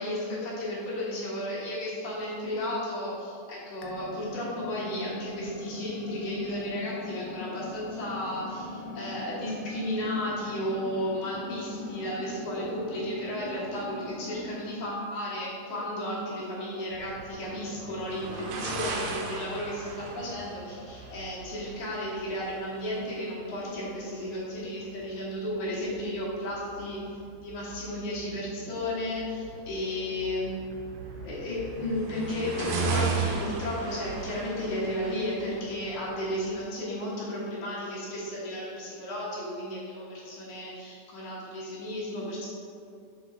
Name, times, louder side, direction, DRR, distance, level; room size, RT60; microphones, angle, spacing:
voice 1, 0.0-29.3 29.7-30.6 31.2-42.5, left 1 dB, 60° left, -7 dB, 2.5 m, -33 dB
sound 1, 3.8-14.7, left 3 dB, 90° left, 2.8 m, -41 dB
sound 2, 16.9-36.6, right 4 dB, 80° right, 2.0 m, -37 dB
7.4 x 3.8 x 3.9 m, 2.6 s
omnidirectional pair, 4.5 m